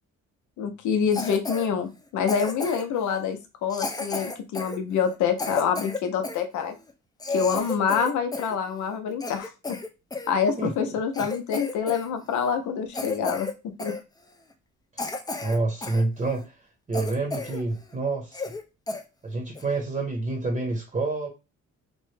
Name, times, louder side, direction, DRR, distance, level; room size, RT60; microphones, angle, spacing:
voice 1, 0.6-6.7 7.3-9.8 10.3-13.9, left 7 dB, 75° left, 6 dB, 0.7 m, -26 dB
Cough, 1.1-1.7 2.3-3.0 3.7-6.4 6.9-7.0 7.2-8.6 8.9-10.3 10.8-10.9 11.1-12.1 12.3-12.5 12.9-13.5 13.8-14.0 14.5-14.6 15.0-16.0 16.4-16.5 16.9-17.6 17.9-18.0 18.3-18.6 18.9-19.0 19.6-19.8, left 3 dB, 15° left, 0.4 m, -32 dB
voice 2, 10.6-10.9 15.4-16.5 16.9-18.5 19.2-21.3, right 3 dB, 25° right, 0 dB, 0.8 m, -28 dB
3.0 x 2.2 x 3.2 m, 0.28 s
cardioid pair, 90°, 30 cm